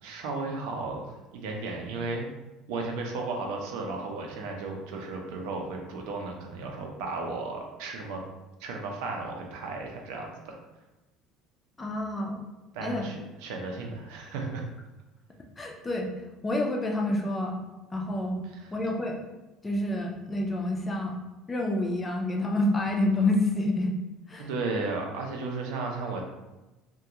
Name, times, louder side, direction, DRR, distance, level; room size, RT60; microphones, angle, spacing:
voice 1, 0.0-2.3 2.7-8.2 8.6-10.6 12.7-14.6 24.4-26.2, right 3 dB, 85° right, 1 dB, 0.5 m, -34 dB
voice 2, 11.8-12.4 12.8-13.1 15.6-16.1 16.4-17.6 17.9-18.4 18.7-19.2 19.6-21.2 21.5-24.0 24.3-24.5, left 1 dB, 15° left, 1 dB, 0.3 m, -28 dB
2.4 x 2.2 x 2.8 m, 1.1 s
cardioid pair, 160°, 0 cm